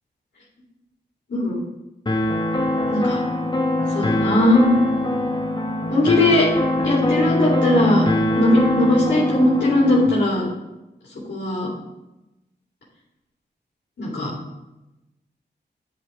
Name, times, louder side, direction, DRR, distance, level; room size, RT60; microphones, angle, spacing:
sound 1, 2.1-10.1, left 1 dB, 25° left, 1.0 m, -23 dB
voice 1, 2.9-3.2 3.9-4.6 5.9-6.5 6.8-8.0 8.3-10.5 11.3-11.7 14.0-14.3, left 1 dB, 85° left, -8 dB, 3.3 m, -19 dB
11.0 x 6.9 x 3.2 m, 0.97 s
wide cardioid pair, 115°, 18 cm